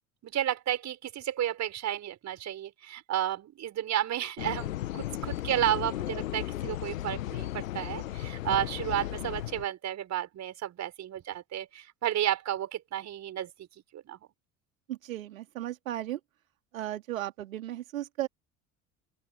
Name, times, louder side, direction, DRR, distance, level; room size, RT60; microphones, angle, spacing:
voice 1, 0.2-13.5 13.9-14.2, right 11 dB, 40° right, 5.6 m, -32 dB
sound 1, 4.4-9.7, left 14 dB, 70° left, 1.9 m, -35 dB
voice 2, 14.9-16.2 16.7-18.3, right 13 dB, 70° right, 2.7 m, -35 dB
open air
figure-of-eight pair, 65°, 42 cm